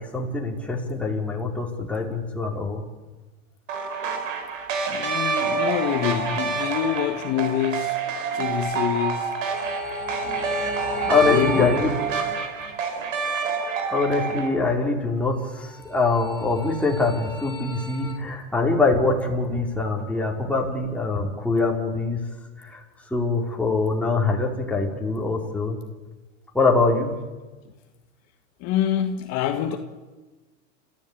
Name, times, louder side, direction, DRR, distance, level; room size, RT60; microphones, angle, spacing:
voice 1, 0.0-2.8 11.1-11.9 13.9-22.2 22.6-22.8 23.1-25.8 26.5-27.1, left 3 dB, 5° left, 4.5 m, -23 dB
sound 1, 3.7-14.5, right 5 dB, 85° right, 4.7 m, -27 dB
voice 2, 4.9-7.9 8.3-9.4 11.0-11.8 17.9-18.3 28.6-29.8, left 10 dB, 45° left, 1.8 m, -26 dB
sound 2, 9.5-12.7 15.5-18.1, left 1 dB, 20° right, 4.7 m, -34 dB
29.0 x 15.0 x 8.9 m
supercardioid pair, 130°, 38 cm